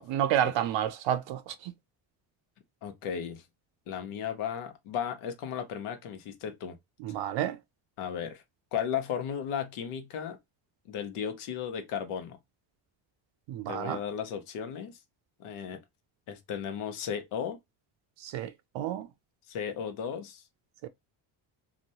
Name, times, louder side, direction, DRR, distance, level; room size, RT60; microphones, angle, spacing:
voice 1, 0.0-1.7 7.0-7.6 13.5-14.0 18.2-19.1 20.8-20.9, right 10 dB, 65° right, 0.5 m, -30 dB
voice 2, 2.8-3.4 3.9-6.8 8.0-8.4 8.7-10.4 10.9-12.4 13.7-15.0 15.4-15.8 16.3-17.6 19.5-20.4, left 8 dB, 80° left, 0.9 m, -35 dB
2.9 x 2.1 x 2.6 m
cardioid pair, 90°, 50 cm